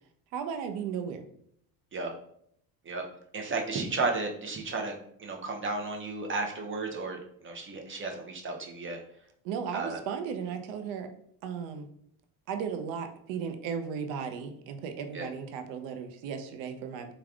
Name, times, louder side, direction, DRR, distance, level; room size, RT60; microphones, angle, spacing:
voice 1, 0.3-1.3 9.4-11.1 11.4-11.9 12.5-17.1, right 7 dB, 75° right, 7 dB, 0.6 m, -35 dB
voice 2, 3.3-4.9 5.2-9.0 9.7-10.0 15.1-15.3, right 3 dB, 25° right, 2 dB, 0.5 m, -33 dB
3.4 x 2.3 x 2.4 m, 0.68 s
supercardioid pair, 80°, 46 cm